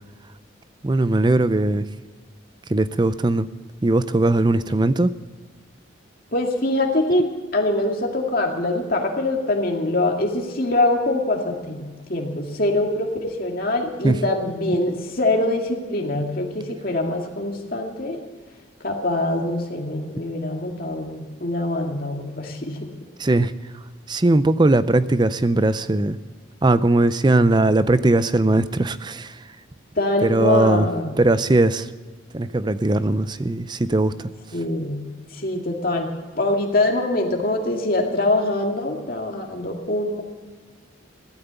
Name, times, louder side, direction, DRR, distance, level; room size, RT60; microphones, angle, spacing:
voice 1, 0.8-1.9 2.7-3.5 3.8-5.1 14.0-14.2 23.2-23.5 24.1-26.2 26.6-29.4 30.2-30.9 31.2-31.9 32.3-34.3, right 2 dB, 20° right, 14 dB, 0.5 m, -19 dB
voice 2, 6.3-7.3 7.5-18.2 18.8-22.8 30.0-31.2 34.5-35.0 35.3-40.2, left 2 dB, 45° left, 1 dB, 2.2 m, -24 dB
15.5 x 12.5 x 7.0 m, 1.4 s
head